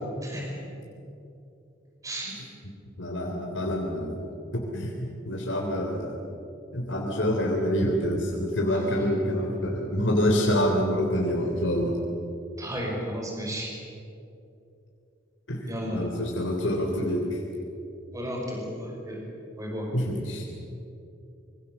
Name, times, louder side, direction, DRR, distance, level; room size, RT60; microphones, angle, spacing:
voice 1, 0.2-0.8 2.0-2.4 8.7-9.1 12.6-13.7 15.7-16.0 18.1-19.2 19.6-19.9, equal, 20° right, -1 dB, 5.6 m, -33 dB
voice 2, 2.6-4.2 4.5-6.2 6.7-12.0 15.5-17.4 19.9-20.4, equal, 85° left, 0 dB, 3.5 m, -27 dB
25.5 x 25.0 x 7.1 m, 2.7 s
head